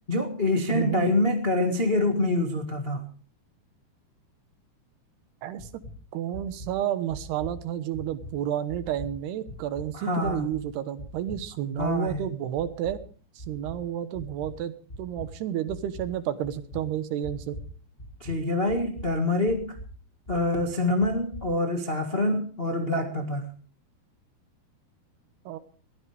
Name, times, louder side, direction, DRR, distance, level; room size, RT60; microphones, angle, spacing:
voice 1, 0.1-3.0 9.9-10.5 11.8-12.3 18.2-19.8 20.3-23.5, left 2 dB, 80° left, 3 dB, 0.5 m, -26 dB
voice 2, 0.7-1.1 5.4-5.7 6.1-13.0 13.4-14.7 15.0-17.6 25.5-25.6, right 11 dB, 80° right, 12 dB, 3.2 m, -31 dB
sound 1, 5.6-6.0 6.3-6.7 7.1-7.6 7.9-8.3 8.7-9.1 9.5-9.8 10.2-10.6 11.0-11.4 11.8-12.2 12.5-13.0 13.4-13.8 14.1-14.5 14.9-15.3 15.7-16.1 16.4-16.8 17.2-17.7 18.0-18.4 18.7-19.1 19.5-19.9 20.3-20.6 21.0-21.4, equal, 30° left, 1.0 m, -41 dB
21.5 x 15.5 x 3.4 m, 0.40 s
omnidirectional pair, 4.6 m